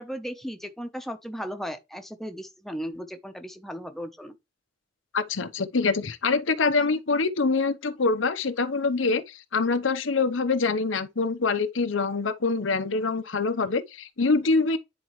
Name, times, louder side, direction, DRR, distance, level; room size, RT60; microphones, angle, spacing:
voice 1, 0.0-4.3, equal, ahead, 0.8 m, -36 dB
voice 2, 5.1-14.8, left 4 dB, 90° left, 0.8 m, -25 dB
9.8 x 4.2 x 3.1 m
head